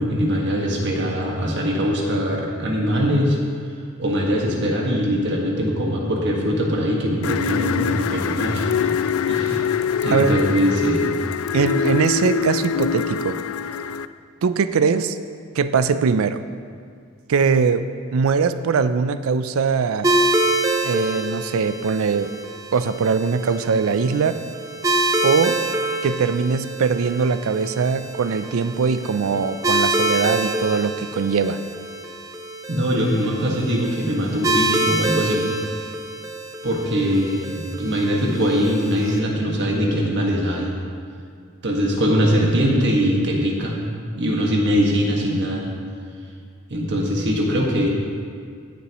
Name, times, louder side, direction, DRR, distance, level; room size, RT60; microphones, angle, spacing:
voice 1, 0.0-3.4 4.0-8.7 9.3-9.7 10.0-11.1 32.7-35.4 36.6-40.8 41.6-43.8 44.1-45.7 46.7-47.9, equal, 55° right, -1 dB, 1.6 m, -21 dB
sound 1, 7.2-14.0, left 7 dB, 80° left, 0.3 m, -24 dB
voice 2, 11.5-13.4 14.4-15.2 15.6-16.4 17.3-20.1 20.8-22.3 22.7-24.4 25.2-25.6 26.0-31.6, right 5 dB, 80° right, 12 dB, 0.4 m, -21 dB
sound 2, 20.0-39.2, right 2 dB, 15° right, 0.5 m, -26 dB
16.5 x 7.0 x 3.0 m, 2.1 s
head